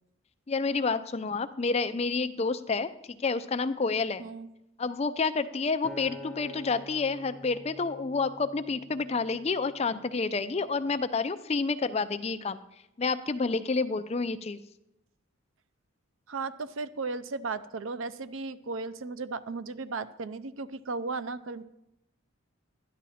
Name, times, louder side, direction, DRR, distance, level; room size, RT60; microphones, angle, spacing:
voice 1, 0.5-2.9 3.2-4.2 4.8-12.6 13.0-14.6, left 4 dB, 30° left, 11 dB, 0.4 m, -29 dB
Acoustic guitar, 5.8-10.2 10.8-11.0, left 1 dB, 5° right, 1.2 m, -47 dB
voice 2, 16.3-21.6, right 3 dB, 70° right, 13 dB, 0.5 m, -35 dB
12.5 x 10.5 x 4.2 m, 0.86 s
head